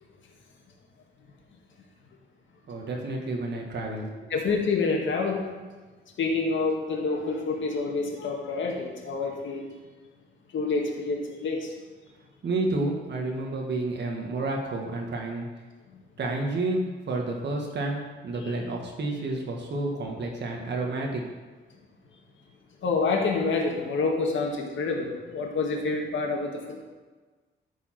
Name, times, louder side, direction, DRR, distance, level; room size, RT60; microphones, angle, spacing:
voice 1, 2.7-4.1 12.4-15.5 16.2-21.2, right 2 dB, 60° right, 0 dB, 1.6 m, -30 dB
voice 2, 4.3-5.4 6.2-9.7 10.5-11.7 15.9-16.0 18.4-18.5 22.8-26.8, left 4 dB, 70° left, 1 dB, 1.9 m, -27 dB
13.0 x 4.8 x 5.9 m, 1.3 s
wide cardioid pair, 140°, 20 cm